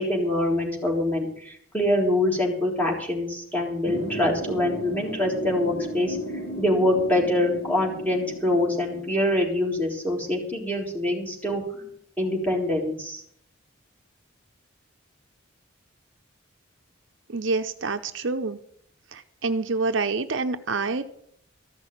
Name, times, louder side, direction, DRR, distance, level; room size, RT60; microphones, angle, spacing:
voice 1, 0.0-6.2 6.6-13.2, left 1 dB, 10° left, -2 dB, 3.8 m, -25 dB
sound 1, 3.8-9.1, right 1 dB, 50° left, 2.0 m, -35 dB
voice 2, 17.3-18.6 19.1-21.0, right 3 dB, 60° right, 8 dB, 0.8 m, -27 dB
14.5 x 6.2 x 9.9 m, 0.67 s
head